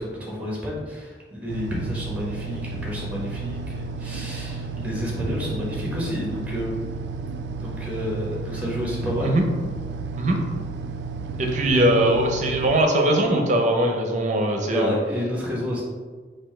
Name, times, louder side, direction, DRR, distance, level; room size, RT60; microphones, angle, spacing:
voice 1, 0.0-6.8 7.5-9.3 11.1-11.4 11.7-11.9 14.7-15.8, equal, 10° right, -4 dB, 1.1 m, -30 dB
sound 1, 1.5-12.8, right 4 dB, 75° right, 0.3 m, -33 dB
voice 2, 11.4-15.0, right 1 dB, 45° right, 3 dB, 0.6 m, -21 dB
4.3 x 2.7 x 4.3 m, 1.4 s
head